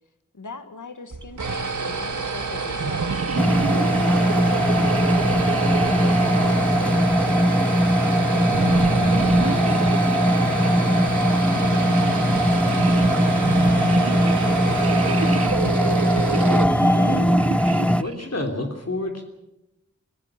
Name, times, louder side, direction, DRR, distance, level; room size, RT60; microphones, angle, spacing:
voice 1, 0.3-8.5 9.0-16.4, left 3 dB, 90° left, 9 dB, 1.9 m, -41 dB
sound 1, 1.1-17.3, right 4 dB, 80° right, 1.9 m, -28 dB
sound 2, 2.8-7.6 8.5-10.8 11.4-18.2, right 5 dB, 55° right, 0.7 m, -30 dB
sound 3, 3.4-18.0, equal, 5° left, 0.8 m, -20 dB
voice 2, 16.9-17.4 18.0-19.2, left 2 dB, 55° left, 3 dB, 3.3 m, -29 dB
25.0 x 17.0 x 7.5 m, 0.91 s
wide cardioid pair, 50°, 30 cm